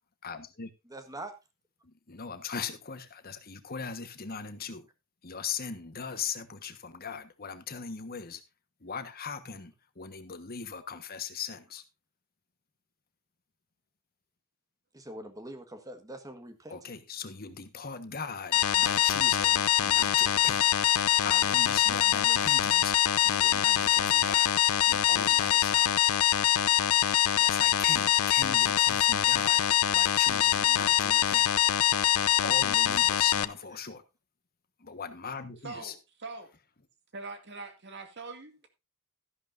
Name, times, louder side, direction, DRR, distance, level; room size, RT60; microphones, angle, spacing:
voice 1, 0.2-0.7 2.1-4.8 5.2-8.4 8.8-11.8 16.7-20.6 21.2-22.9 23.2-24.5 24.9-25.9 27.4-29.6 29.9-31.5 32.4-34.0 34.8-35.9, left 6 dB, 45° left, 1.3 m, -39 dB
voice 2, 0.8-1.3 14.9-16.9, right 1 dB, 15° right, 1.5 m, -43 dB
sound 1, 18.5-33.4, left 11 dB, 75° left, 0.6 m, -24 dB
voice 3, 35.6-36.5 37.1-38.7, right 3 dB, 55° right, 2.2 m, -43 dB
13.0 x 11.0 x 2.6 m
head